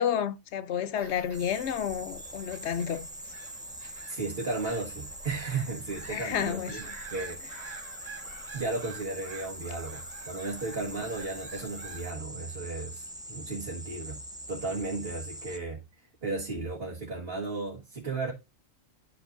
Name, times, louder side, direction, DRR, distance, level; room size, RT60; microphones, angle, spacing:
voice 1, 0.0-3.1 6.1-6.8, left 9 dB, 65° left, 0.8 m, -30 dB
Bird vocalization bird call bird song / Gull seagull, 1.0-12.1, right 3 dB, 65° right, 2.4 m, -48 dB
sound 1, 1.3-15.6, right 1 dB, 5° right, 0.6 m, -43 dB
voice 2, 4.1-7.9 8.5-14.2 14.5-15.8 16.2-18.3, right 3 dB, 45° right, 1.7 m, -35 dB
12.0 x 5.4 x 2.5 m
omnidirectional pair, 1.4 m